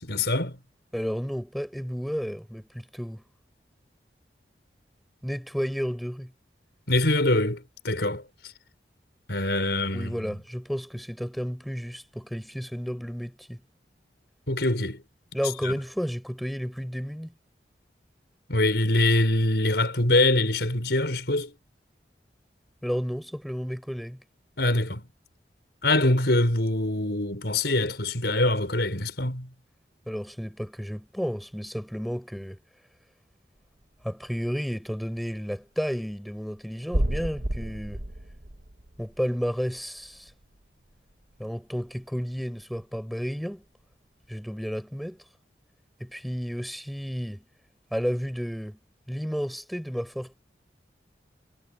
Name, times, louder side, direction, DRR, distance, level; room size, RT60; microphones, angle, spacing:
voice 1, 0.0-0.6 6.9-8.2 9.3-10.3 14.5-15.0 15.6-15.7 18.5-21.5 24.6-25.0 25.8-29.5, left 2 dB, 75° left, 4.7 m, -24 dB
voice 2, 0.9-3.2 5.2-6.3 9.9-13.6 15.3-17.3 22.8-24.2 30.1-32.6 34.0-38.0 39.0-40.3 41.4-43.6 44.3-45.2 46.0-47.4 47.9-48.8 49.1-50.3, equal, ahead, 6.7 m, -32 dB
sound 1, 33.8-34.0 36.1-36.2 36.9-40.6 40.9-41.4 41.8-41.9 42.8-42.9, right 1 dB, 60° right, 1.5 m, -32 dB
head